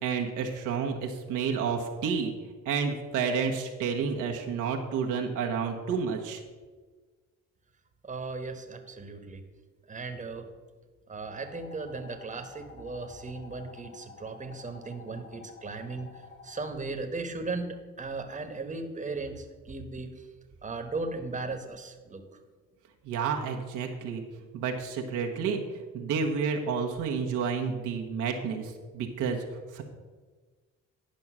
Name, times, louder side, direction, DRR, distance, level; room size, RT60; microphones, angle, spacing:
voice 1, 0.0-2.3 2.6-6.4 23.0-24.2 24.5-25.6 25.9-29.4 29.7-29.8, right 6 dB, 90° right, 2 dB, 1.2 m, -30 dB
voice 2, 8.0-9.4 9.9-10.5 11.1-20.3 20.6-22.2, right 3 dB, 25° right, 6 dB, 1.2 m, -37 dB
sound 1, 11.3-16.7, left 5 dB, 55° left, 3.5 m, -51 dB
10.5 x 5.4 x 6.1 m, 1.4 s
cardioid pair, 90°, 30 cm